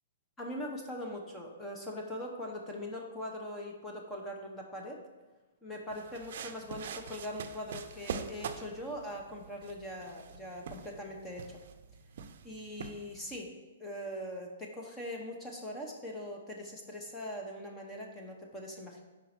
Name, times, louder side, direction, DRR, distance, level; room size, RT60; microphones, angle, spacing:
voice 1, 0.4-5.0 5.6-11.6 12.4-13.5 13.8-19.0, left 1 dB, 10° left, 0 dB, 0.8 m, -41 dB
sound 1, 5.9-13.4, right 6 dB, 55° right, 0.5 m, -44 dB
5.0 x 4.5 x 5.8 m, 1.2 s
hypercardioid pair, 165°, 0 cm